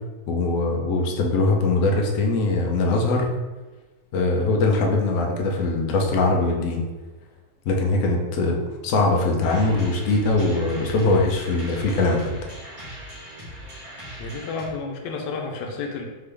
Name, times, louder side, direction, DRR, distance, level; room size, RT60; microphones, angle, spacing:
voice 1, 0.3-3.3 4.1-6.8 7.7-12.3, left 2 dB, 60° left, 0 dB, 0.9 m, -21 dB
sound 1, 9.4-14.7, equal, 20° right, 1.1 m, -40 dB
voice 2, 14.2-16.0, left 4 dB, 90° left, 2 dB, 1.3 m, -31 dB
3.8 x 3.7 x 3.3 m, 1.2 s
omnidirectional pair, 1.8 m